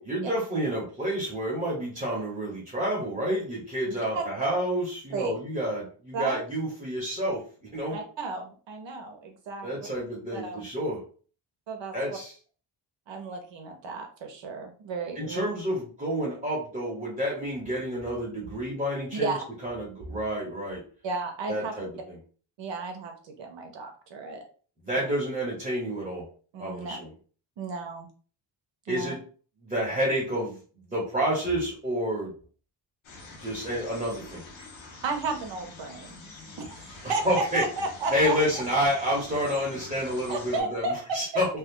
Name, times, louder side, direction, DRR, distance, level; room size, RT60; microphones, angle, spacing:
voice 1, 0.0-7.4 7.7-8.0 9.6-11.0 11.9-12.3 15.2-19.4 19.6-20.8 21.5-22.2 24.8-26.2 26.6-27.1 28.9-29.2 29.6-30.6 30.9-32.3 33.4-34.4 37.2-37.6 38.1-41.5, equal, 15° right, -5 dB, 1.0 m, -29 dB
voice 2, 7.9-9.9 10.3-10.7 11.7-11.9 13.1-15.4 19.1-19.4 21.0-21.7 22.6-24.4 25.0-25.1 26.5-27.0 27.6-28.1 28.9-29.1 35.0-36.2 36.6-37.3 37.5-38.8 40.3-41.4, right 3 dB, 70° right, 3 dB, 0.7 m, -33 dB
sound 1, 33.0-40.6, left 3 dB, 75° left, 1.0 m, -46 dB
2.9 x 2.3 x 3.5 m, 0.41 s
wide cardioid pair, 150°, 47 cm